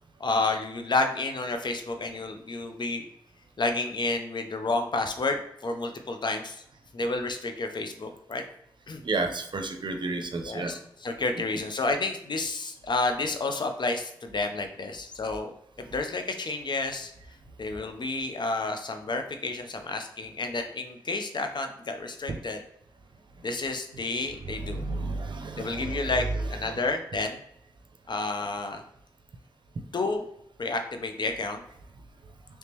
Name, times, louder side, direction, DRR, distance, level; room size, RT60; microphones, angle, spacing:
voice 1, 0.2-3.1 3.6-6.6 6.9-8.4 8.9-9.0 10.4-15.5 15.8-17.1 17.6-22.6 23.4-24.8 25.6-26.3 26.5-27.4 28.1-28.8 29.9-30.2 30.6-31.6, left 3 dB, 55° left, 5 dB, 0.6 m, -30 dB
voice 2, 9.0-10.7 22.3-22.4 23.9-24.0 24.4-26.8, right 3 dB, 60° right, 5 dB, 0.6 m, -32 dB
3.1 x 2.8 x 3.4 m, 0.73 s
cardioid pair, 40°, 9 cm